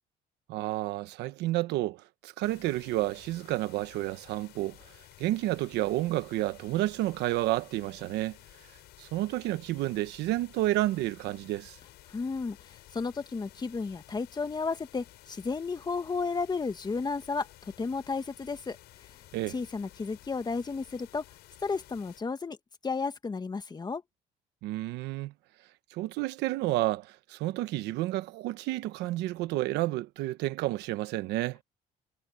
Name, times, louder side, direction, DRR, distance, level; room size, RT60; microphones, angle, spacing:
voice 1, 0.5-4.9 5.2-8.4 9.0-11.8 19.3-19.6 24.6-25.3 25.9-31.6, right 17 dB, 90° right, 1.1 m, -30 dB
sound 1, 2.4-22.2, left 15 dB, 80° left, 6.5 m, -54 dB
voice 2, 12.1-18.8 19.5-21.2 21.6-22.6 22.8-24.0, left 4 dB, 25° left, 1.7 m, -33 dB
cardioid pair, 110°, 17 cm